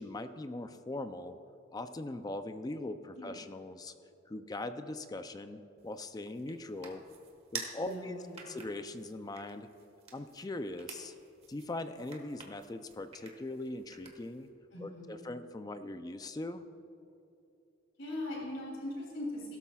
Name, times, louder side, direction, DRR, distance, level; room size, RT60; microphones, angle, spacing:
voice 1, 0.0-1.4 1.7-3.9 4.3-7.0 7.5-8.2 8.5-9.7 10.1-11.1 11.5-14.5 14.8-16.6, left 2 dB, 20° left, 9 dB, 0.4 m, -40 dB
Cracking knuckles, 5.8-14.5, right 5 dB, 30° right, 1.4 m, -50 dB
voice 2, 7.8-8.6 14.7-15.2 18.0-19.6, left 1 dB, 65° left, -4 dB, 2.9 m, -40 dB
16.5 x 13.0 x 2.3 m, 2.9 s
head